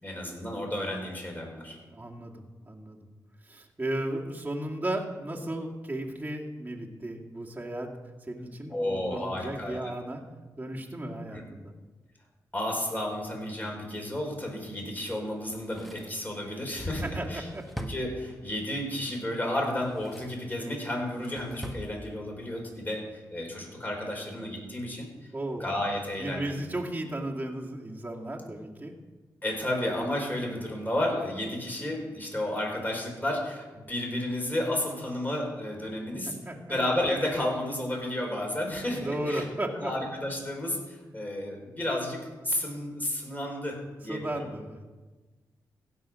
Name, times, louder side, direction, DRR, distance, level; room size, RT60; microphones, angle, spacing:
voice 1, 0.0-1.8 8.7-9.8 11.3-11.4 12.5-17.5 17.8-25.3 25.6-26.5 29.4-36.3 36.7-39.4 39.8-43.8 44.0-44.3, left 1 dB, 20° left, -1 dB, 4.6 m, -32 dB
voice 2, 1.9-3.1 3.4-7.9 8.2-10.2 10.6-11.7 17.0-17.7 25.3-25.6 26.2-28.9 36.3-36.8 38.9-39.9 44.1-44.8, right 1 dB, 20° right, -2 dB, 2.1 m, -35 dB
Drawer open or close, 15.4-18.7 19.6-20.5 20.9-21.9 22.2-22.3, equal, ahead, 1.4 m, -43 dB
16.0 x 5.6 x 6.3 m, 1.3 s
cardioid pair, 50°, 8 cm